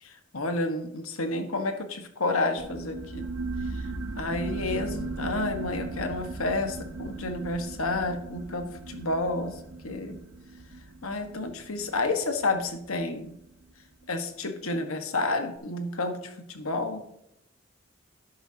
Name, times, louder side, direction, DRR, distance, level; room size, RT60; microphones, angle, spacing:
voice 1, 0.3-3.3 3.7-3.9 4.2-10.2 11.0-13.4 14.1-17.0, left 2 dB, 85° left, 6 dB, 1.4 m, -30 dB
sound 1, 2.6-13.7, right 3 dB, 70° right, 0.9 m, -38 dB
11.5 x 10.0 x 2.8 m, 0.81 s
head